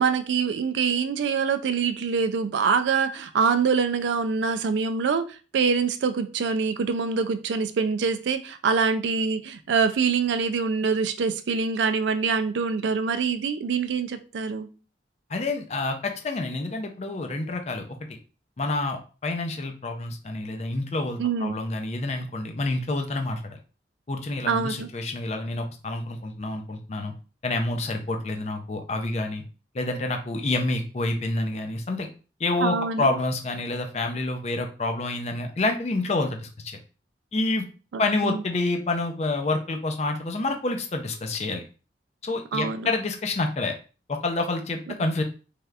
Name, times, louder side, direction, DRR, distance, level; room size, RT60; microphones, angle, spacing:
voice 1, 0.0-5.2 5.5-14.7 21.2-21.6 24.5-24.9 32.6-33.1 37.9-38.4 42.5-42.9, right 5 dB, 85° right, 10 dB, 0.4 m, -25 dB
voice 2, 15.3-17.9 18.6-23.6 24.1-27.1 27.4-29.4 29.7-32.1 32.4-36.8 37.3-37.7 38.0-41.6 42.2-43.7 44.1-45.2, left 2 dB, 40° left, 5 dB, 0.5 m, -28 dB
3.3 x 2.7 x 2.3 m, 0.35 s
head